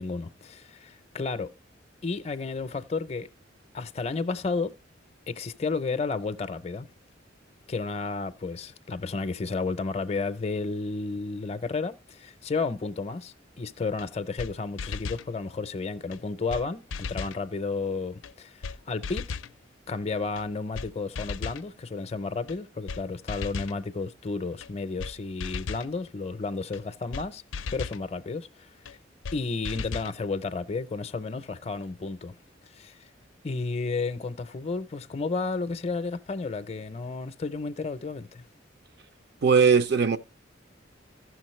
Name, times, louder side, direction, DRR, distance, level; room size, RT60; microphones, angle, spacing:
voice 1, 0.0-1.5 2.0-3.3 3.7-4.7 5.3-6.9 7.7-19.4 19.9-27.4 27.7-29.0 29.3-32.4 32.7-32.9 33.4-38.4, left 4 dB, 35° left, 0.5 m, -32 dB
sound 1, 14.0-14.1 14.4-14.5 14.8-15.3 16.1-16.2 16.5-16.6 16.9-17.4 18.2-18.3 18.6-18.8 19.0-19.5 20.4-20.5 20.7-20.9 21.2-21.6 22.5-22.6 22.9-23.0 23.3-23.8 24.6-24.7 25.0-25.1 25.4-25.9 26.7-26.8 27.1-27.3 27.5-28.0 28.9-29.0 29.2-29.4 29.6-30.1, left 5 dB, 90° left, 0.4 m, -35 dB
voice 2, 39.4-40.2, right 5 dB, 60° right, 0.5 m, -19 dB
15.5 x 6.3 x 3.1 m
head